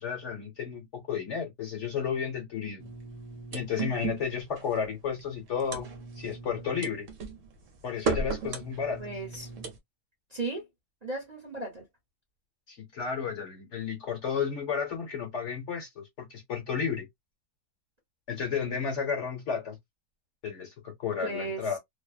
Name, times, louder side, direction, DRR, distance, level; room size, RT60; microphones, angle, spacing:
voice 1, 0.0-2.9 3.5-5.9 6.2-7.1 7.8-9.1 12.7-17.0 18.3-19.8 20.4-21.8, left 6 dB, 50° left, 1.1 m, -32 dB
sound 1, 2.8-9.8, right 5 dB, 60° right, 1.0 m, -36 dB
voice 2, 9.0-9.5 10.3-10.6 11.0-11.8 21.2-21.6, right 2 dB, 30° right, 0.9 m, -35 dB
2.7 x 2.1 x 2.3 m
omnidirectional pair, 1.7 m